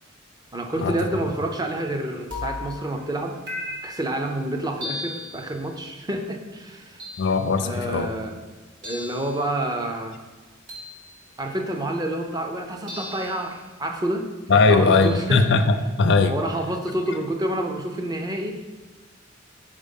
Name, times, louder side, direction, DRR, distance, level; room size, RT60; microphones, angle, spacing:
voice 1, 0.5-3.4 3.8-7.0 7.6-8.4 8.8-10.2 11.4-15.5 16.3-18.5, right 1 dB, 20° right, 3 dB, 0.6 m, -28 dB
sound 1, 0.8-1.3 2.3-3.0 3.5-4.2 4.8-5.5 7.0-7.5 8.8-9.4 10.7-11.2 12.9-13.5 15.0-15.5, left 2 dB, 60° right, 1.8 m, -36 dB
voice 2, 7.2-8.1 14.5-16.4, left 4 dB, 60° left, 7 dB, 0.5 m, -19 dB
5.2 x 4.5 x 5.2 m, 1.3 s
head